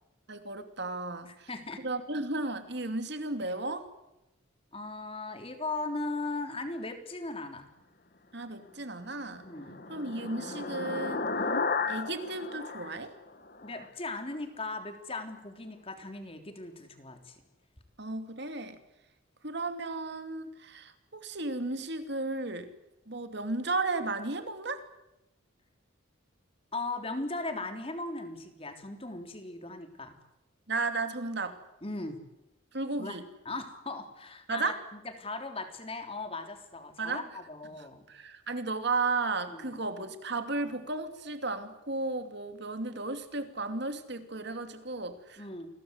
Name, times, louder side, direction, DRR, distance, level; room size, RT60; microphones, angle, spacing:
voice 1, 0.3-1.5 1.8-3.9 8.3-9.5 9.9-11.3 11.9-13.1 18.0-18.8 19.4-22.7 23.1-24.8 30.7-31.6 32.7-33.3 34.5-34.8 37.0-37.2 37.7-45.5, right 3 dB, 55° right, 8 dB, 2.7 m, -34 dB
voice 2, 1.3-1.8 4.7-7.7 9.4-9.8 13.6-17.4 26.7-30.2 31.8-32.2 33.0-33.2 33.5-34.7 35.2-38.1 39.5-39.8 45.4-45.7, left 2 dB, 30° left, 6 dB, 3.4 m, -38 dB
sound 1, 9.1-13.8, left 4 dB, 45° left, 1.6 m, -34 dB
28.5 x 22.5 x 8.1 m, 0.93 s
head